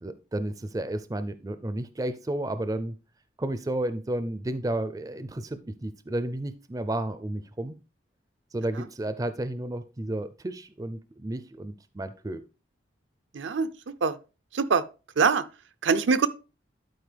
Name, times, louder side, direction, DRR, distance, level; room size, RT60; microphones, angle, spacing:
voice 1, 0.0-3.0 3.4-7.8 8.5-12.4, right 1 dB, 20° right, 0.4 m, -32 dB
voice 2, 13.3-13.7 14.0-14.2 14.5-14.8 15.2-15.4 15.8-16.3, right 5 dB, 80° right, 0.6 m, -23 dB
11.5 x 4.6 x 3.3 m
head